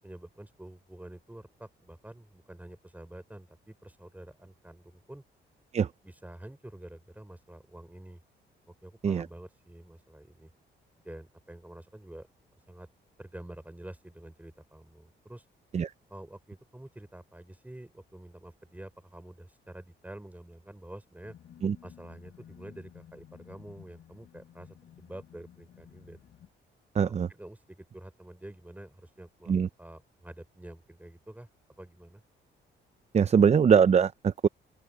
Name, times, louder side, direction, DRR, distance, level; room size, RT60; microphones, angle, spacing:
voice 1, 0.0-5.2 6.0-8.2 8.7-10.5 11.0-12.3 12.7-12.9 13.2-15.4 16.1-21.4 21.8-26.2 26.9-31.5 31.8-32.2, right 1 dB, 10° right, 6.1 m, -48 dB
sound 1, 21.2-26.5, left 9 dB, 65° left, 6.0 m, -54 dB
voice 2, 26.9-27.3 29.5-29.7 33.1-34.5, right 7 dB, 35° right, 0.5 m, -22 dB
open air
cardioid pair, 90°, 20 cm